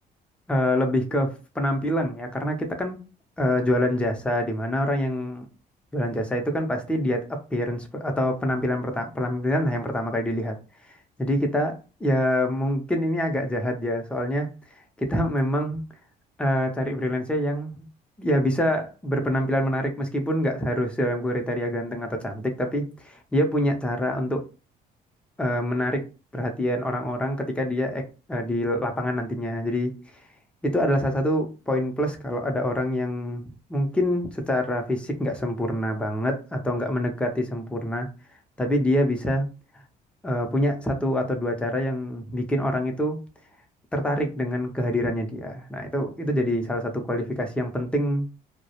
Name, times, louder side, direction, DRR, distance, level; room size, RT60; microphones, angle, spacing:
voice 1, 0.5-3.0 3.4-5.5 5.9-10.5 11.2-14.5 15.0-15.8 16.4-17.9 18.2-24.4 25.4-26.0 26.3-28.0 28.3-30.0 30.6-38.1 38.6-39.5 40.2-43.2 43.9-48.3, equal, 5° left, 0.5 m, -26 dB
2.3 x 2.0 x 2.8 m
cardioid pair, 110°, 17 cm